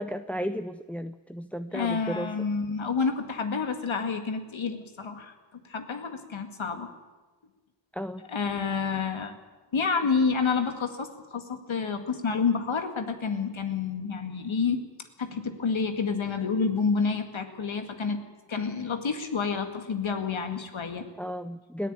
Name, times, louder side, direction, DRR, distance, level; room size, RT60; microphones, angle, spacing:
voice 1, 0.0-2.5 7.9-8.3 21.2-21.9, equal, 5° left, 10 dB, 0.6 m, -34 dB
voice 2, 1.7-6.9 8.3-9.3 9.7-14.8 15.2-18.2 18.5-21.1, left 5 dB, 75° left, 7 dB, 2.1 m, -29 dB
20.5 x 14.0 x 8.9 m, 1.2 s
cardioid pair, 55°, 47 cm